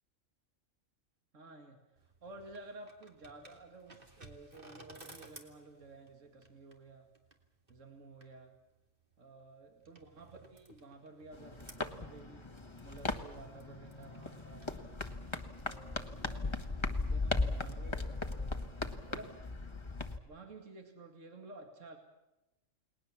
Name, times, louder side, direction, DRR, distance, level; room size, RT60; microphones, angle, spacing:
voice 1, 1.3-1.8 2.2-7.1 7.7-8.5 9.2-12.5 12.8-15.1 15.6-18.6 19.1-19.4 20.3-22.0, right 3 dB, 65° right, 4 dB, 2.5 m, -53 dB
sound 1, 2.0-17.7, right 2 dB, 40° right, 2.8 m, -60 dB
sound 2, 11.3-20.2, left 3 dB, 20° left, 1.4 m, -38 dB
29.5 x 20.0 x 7.3 m, 1.0 s
omnidirectional pair, 1.4 m